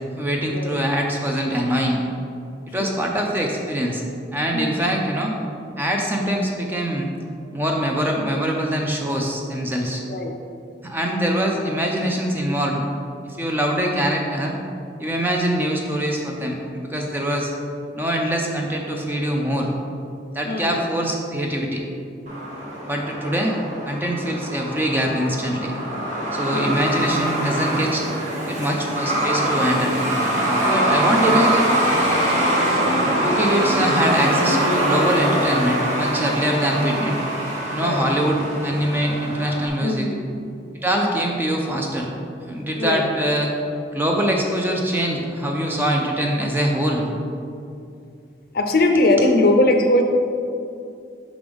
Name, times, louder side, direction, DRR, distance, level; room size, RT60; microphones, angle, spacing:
voice 1, 0.1-2.0 2.7-4.1 4.3-5.3 5.8-7.1 7.5-10.0 10.8-12.8 13.4-14.6 15.0-17.5 17.9-19.7 20.3-21.8 22.8-23.5 23.9-25.7 26.3-28.0 28.5-29.9 30.7-31.7 32.2-32.3 33.2-37.1 37.7-40.1 40.8-42.1 42.5-43.5 43.9-47.2, equal, 10° right, 0 dB, 0.5 m, -23 dB
voice 2, 4.5-5.0 10.1-10.3 20.4-20.9 26.5-26.9 30.6-31.0 37.8-38.1 39.8-40.3 42.8-43.1 48.5-50.0, left 1 dB, 55° left, 4 dB, 0.5 m, -21 dB
Truck, 22.3-39.7, right 1 dB, 40° right, 0.9 m, -23 dB
6.0 x 5.1 x 3.5 m, 2.5 s
head